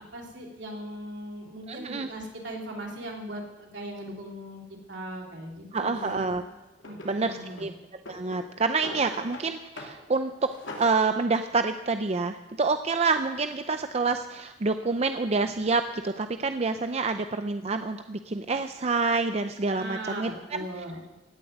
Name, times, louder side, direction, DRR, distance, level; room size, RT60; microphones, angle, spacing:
voice 1, 0.0-4.6 4.9-6.5 6.8-7.7 19.7-21.0, right 1 dB, 70° right, 0 dB, 3.4 m, -39 dB
voice 2, 1.7-2.1 5.7-6.4 7.0-7.7 8.1-10.5 10.8-20.6, right 4 dB, 35° right, 8 dB, 0.5 m, -27 dB
Drawer open or close, 5.9-6.2 6.8-7.7 8.0-9.5 9.8-10.0 10.3-11.0, left 1 dB, 85° left, 3.1 m, -42 dB
16.5 x 7.6 x 9.2 m, 1.1 s
head